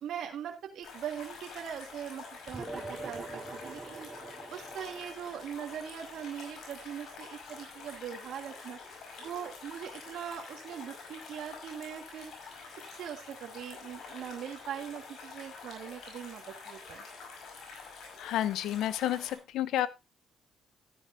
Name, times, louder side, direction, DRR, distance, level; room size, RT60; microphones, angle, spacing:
voice 1, 0.0-4.1 4.5-8.8 9.2-12.3 12.9-17.1, right 9 dB, 75° right, 2 dB, 1.8 m, -41 dB
sound 1, 0.8-19.4, left 4 dB, 70° left, 5.6 m, -47 dB
sound 2, 2.5-7.3, right 2 dB, 15° right, 4.2 m, -44 dB
voice 2, 18.2-19.9, left 12 dB, 85° left, 16 dB, 0.7 m, -30 dB
13.0 x 10.0 x 2.7 m, 0.25 s
cardioid pair, 90°, 0 cm